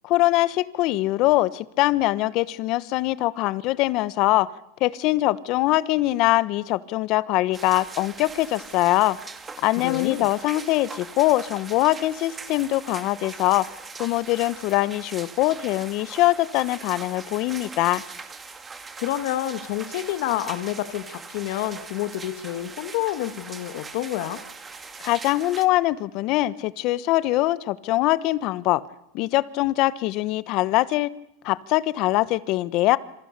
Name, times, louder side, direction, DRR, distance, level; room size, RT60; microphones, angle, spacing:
voice 1, 0.0-4.5 4.8-9.2 9.6-13.7 14.0-18.0 25.0-28.8 29.1-31.1 31.4-33.0, left 17 dB, 45° left, 17 dB, 1.1 m, -22 dB
sound 1, 7.5-25.7, right 4 dB, 15° right, 2.1 m, -41 dB
voice 2, 9.8-10.3 19.0-24.4, left 14 dB, 60° left, 9 dB, 1.9 m, -28 dB
27.5 x 26.0 x 6.8 m, 0.81 s
supercardioid pair, 140°, 0 cm